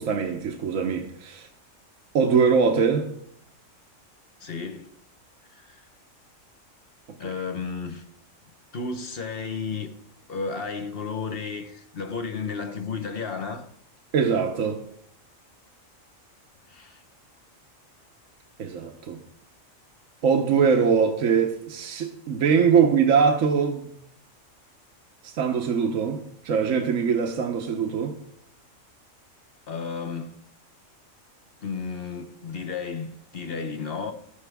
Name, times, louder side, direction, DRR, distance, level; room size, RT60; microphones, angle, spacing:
voice 1, 0.0-1.5 2.1-3.1 7.2-7.3 14.1-14.8 18.6-19.2 20.2-23.9 25.4-28.2, right 6 dB, 75° right, 1.3 m, -22 dB
voice 2, 4.4-4.9 5.5-5.8 7.2-8.0 8.7-9.9 10.3-13.7 16.7-17.0 29.7-30.4 31.6-34.1, left 5 dB, 50° left, 1.2 m, -33 dB
12.5 x 9.9 x 3.5 m
omnidirectional pair, 1.4 m